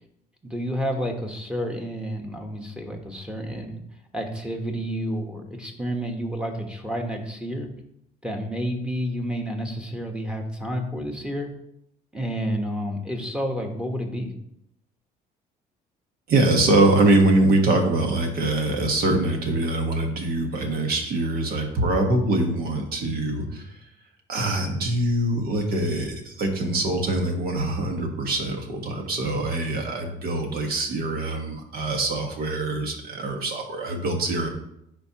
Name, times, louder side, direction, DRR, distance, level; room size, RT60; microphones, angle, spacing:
voice 1, 0.4-3.8 4.1-7.7 8.2-11.5 12.1-14.3, equal, 5° right, 2 dB, 1.2 m, -30 dB
voice 2, 16.3-23.8 24.3-34.5, right 2 dB, 65° right, 3 dB, 1.5 m, -23 dB
10.5 x 4.5 x 3.0 m, 0.78 s
cardioid pair, 110°, 17 cm